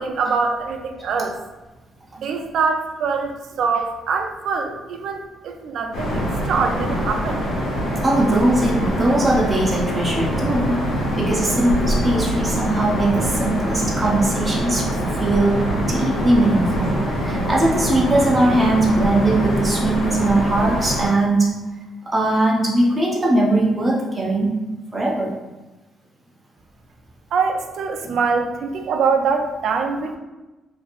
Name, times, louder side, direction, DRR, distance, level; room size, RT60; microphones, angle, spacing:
voice 1, 0.0-1.4 2.2-7.4 27.3-30.2, right 5 dB, 70° right, 4 dB, 0.3 m, -23 dB
sound 1, 5.9-21.1, equal, 90° left, 1.3 m, -24 dB
voice 2, 8.0-21.5 22.1-24.5 24.9-25.4 28.0-28.2, right 1 dB, 20° right, -4 dB, 0.6 m, -20 dB
3.1 x 2.6 x 2.4 m, 1.1 s
cardioid pair, 90°, 0 cm